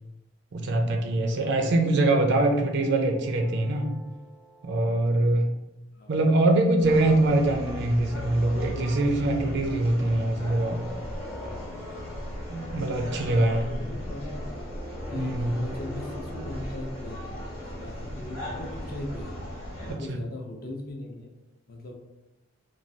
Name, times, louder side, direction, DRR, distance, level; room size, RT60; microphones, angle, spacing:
voice 1, 0.5-4.0 4.6-5.5 6.1-10.8 12.5-13.7 15.2-15.5 19.9-20.1, right 2 dB, 60° right, 3 dB, 0.4 m, -23 dB
voice 2, 1.3-1.7 5.9-6.2 13.1-14.6 15.1-19.4 19.8-21.3 21.7-21.9, left 2 dB, 50° left, 1 dB, 0.5 m, -39 dB
sound 1, 2.8-5.3 7.0-8.8 10.2-12.9 14.3-18.8, equal, ahead, 0.3 m, -47 dB
sound 2, 6.8-20.0, equal, 85° left, 0.9 m, -37 dB
3.1 x 2.3 x 2.6 m, 0.94 s
head